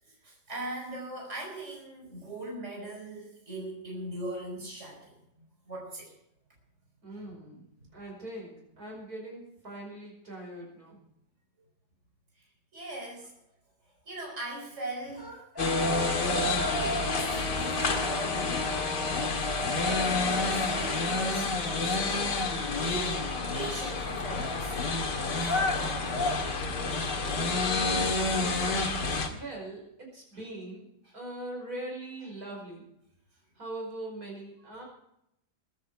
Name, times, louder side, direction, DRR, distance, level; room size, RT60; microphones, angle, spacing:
voice 1, 0.0-6.1 7.1-7.2 12.4-12.5 12.7-13.3 14.1-15.3 16.8-18.8 19.8-26.4 27.5-27.7 28.7-28.8 31.0-31.2, right 1 dB, 40° right, -1 dB, 5.3 m, -40 dB
voice 2, 7.0-7.7 7.9-11.0 27.8-28.5 29.3-30.8 31.1-32.9 33.6-34.8, right 1 dB, 60° right, -1 dB, 5.5 m, -41 dB
sound 1, 15.1-17.3, right 2 dB, 10° left, 4.8 m, -35 dB
sound 2, 15.6-29.3, left 3 dB, 85° left, 2.5 m, -29 dB
22.0 x 10.5 x 4.7 m, 0.78 s
omnidirectional pair, 1.8 m